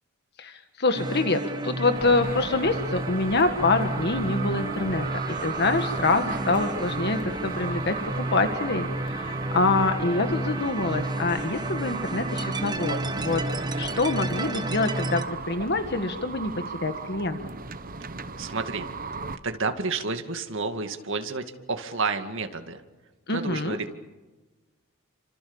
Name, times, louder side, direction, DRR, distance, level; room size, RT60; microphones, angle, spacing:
voice 1, 0.4-13.4 13.7-17.4 23.3-23.8, left 3 dB, 50° left, 7 dB, 1.7 m, -26 dB
sound 1, 0.9-15.2, right 1 dB, 20° right, 1.3 m, -31 dB
sound 2, 1.9-19.4, right 4 dB, 40° right, 1.2 m, -36 dB
voice 2, 18.4-18.9 19.4-22.8 23.3-23.9, right 4 dB, 60° right, 6 dB, 2.2 m, -30 dB
30.0 x 26.0 x 7.2 m, 1.2 s
head